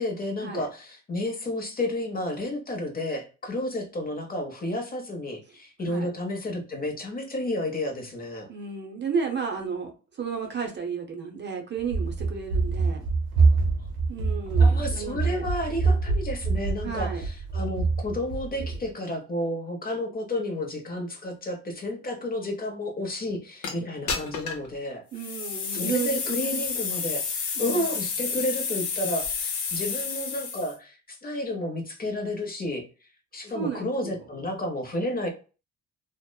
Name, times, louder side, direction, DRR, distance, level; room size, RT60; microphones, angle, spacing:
voice 1, 0.0-8.5 14.5-25.0 25.7-32.8 33.3-35.3, left 1 dB, 30° left, 3 dB, 0.8 m, -31 dB
voice 2, 8.5-13.1 14.1-15.5 16.8-17.3 25.1-26.6 27.6-27.9 33.5-34.2, right 6 dB, 35° right, 3 dB, 0.6 m, -33 dB
Run, 11.8-18.9, right 4 dB, 85° right, 0.9 m, -25 dB
sound 1, 23.6-23.7 24.1-24.7 25.1-30.7, left 5 dB, 70° left, 0.8 m, -30 dB
2.9 x 2.0 x 2.2 m, 0.34 s
cardioid pair, 90°, 30 cm